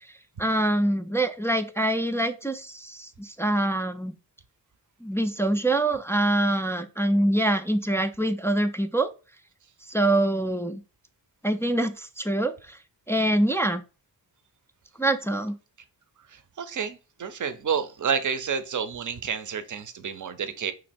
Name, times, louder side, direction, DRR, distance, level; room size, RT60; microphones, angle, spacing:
voice 1, 0.4-4.2 5.0-9.1 9.9-10.8 11.4-12.8 13.1-13.8 15.0-15.6, right 1 dB, 5° left, 0.3 m, -25 dB
voice 2, 16.3-20.7, right 7 dB, 45° right, 0.6 m, -30 dB
3.0 x 2.8 x 4.2 m
cardioid pair, 60°, 45 cm